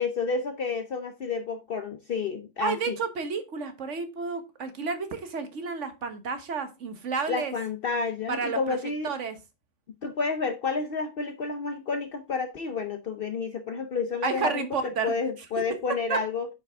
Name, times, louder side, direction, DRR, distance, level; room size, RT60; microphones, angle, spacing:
voice 1, 0.0-3.0 7.3-9.1 10.0-16.5, left 4 dB, 55° left, 0.8 m, -30 dB
voice 2, 2.6-7.5 8.3-8.8 9.0-9.4 14.2-15.1 16.1-16.2, right 5 dB, 75° right, 1.4 m, -31 dB
8.7 x 5.3 x 3.3 m
omnidirectional pair, 1.3 m